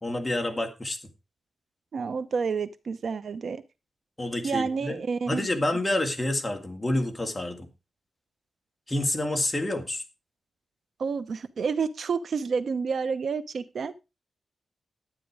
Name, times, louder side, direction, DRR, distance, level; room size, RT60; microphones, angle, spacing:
voice 1, 0.0-1.0 4.2-4.9 5.3-7.7 8.9-10.0, left 1 dB, 15° left, 2.3 m, -28 dB
voice 2, 1.9-3.6 4.4-5.5 11.0-13.9, right 5 dB, 65° right, 0.8 m, -29 dB
12.0 x 9.2 x 4.8 m
wide cardioid pair, 115°, 0 cm